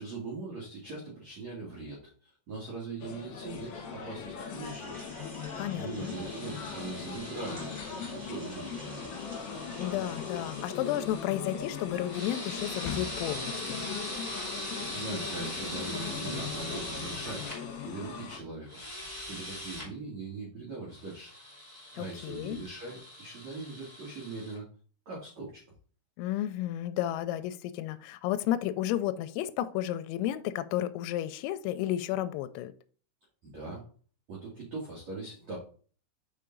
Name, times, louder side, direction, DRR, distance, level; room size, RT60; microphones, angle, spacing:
voice 1, 0.0-5.1 5.8-9.3 14.4-17.6 17.8-18.8 19.2-21.3 21.9-24.7 25.1-25.6 33.4-33.8 34.3-35.6, right 3 dB, 60° right, 1.8 m, -41 dB
sound 1, 3.0-18.4, left 6 dB, 65° left, 2.7 m, -40 dB
sound 2, 4.6-10.7, right 1 dB, 85° right, 0.8 m, -49 dB
voice 2, 5.6-6.1 9.8-13.8 22.0-22.6 26.2-32.7, left 12 dB, 85° left, 3.2 m, -32 dB
sound 3, 6.0-11.3 12.0-17.6 18.7-19.9 20.9-24.6, left 1 dB, 25° right, 0.8 m, -42 dB
6.6 x 5.7 x 3.8 m
omnidirectional pair, 6.0 m